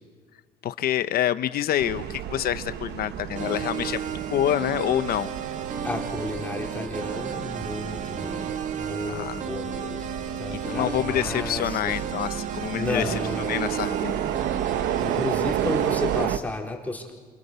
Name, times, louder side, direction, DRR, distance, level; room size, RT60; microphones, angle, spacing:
voice 1, 0.6-5.3 9.1-9.4 10.5-13.2 13.5-14.2, left 11 dB, 65° left, 12 dB, 1.0 m, -27 dB
sound 1, 1.8-16.4, right 11 dB, 75° right, 1.2 m, -32 dB
sound 2, 3.3-16.3, right 7 dB, 45° right, 2.1 m, -33 dB
voice 2, 5.8-10.1 10.4-11.9 12.8-13.6 15.0-17.1, left 2 dB, 10° left, -1 dB, 4.3 m, -32 dB
28.0 x 25.5 x 7.0 m, 1.6 s
cardioid pair, 110°, 17 cm